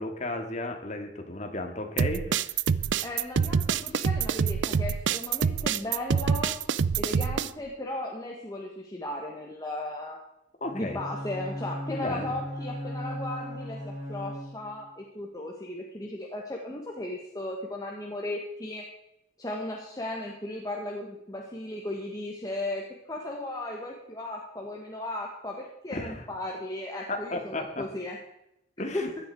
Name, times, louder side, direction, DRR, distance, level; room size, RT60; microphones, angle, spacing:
voice 1, 0.0-2.6 10.6-11.0 11.9-12.3 25.9-26.2 27.1-27.8 28.8-29.1, left 2 dB, 40° left, 4 dB, 2.1 m, -34 dB
sound 1, 2.0-7.5, right 6 dB, 75° right, 0.5 m, -26 dB
voice 2, 3.0-6.6 7.0-10.2 10.7-18.9 19.4-28.2 28.9-29.1, left 1 dB, 20° left, -1 dB, 1.7 m, -36 dB
Bowed string instrument, 10.6-14.9, equal, 35° right, 4.9 m, -37 dB
15.5 x 11.5 x 4.7 m, 0.83 s
head